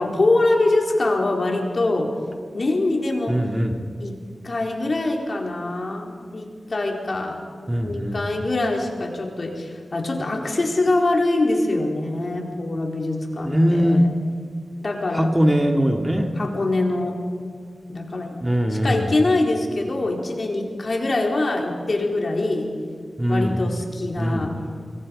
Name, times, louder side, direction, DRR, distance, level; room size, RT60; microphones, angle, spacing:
voice 1, 0.0-2.1 2.5-3.4 4.0-4.2 4.4-7.4 7.8-14.1 14.8-15.3 16.4-17.1 17.9-18.4 18.8-22.7 23.3-24.6, left 2 dB, 50° left, 0 dB, 4.4 m, -23 dB
voice 2, 3.3-3.8 7.7-8.2 13.4-14.0 15.1-16.3 18.4-19.1 23.2-23.6 24.2-24.5, equal, 15° right, 3 dB, 2.3 m, -21 dB
27.0 x 22.5 x 5.4 m, 2.1 s
wide cardioid pair, 65°, 0 cm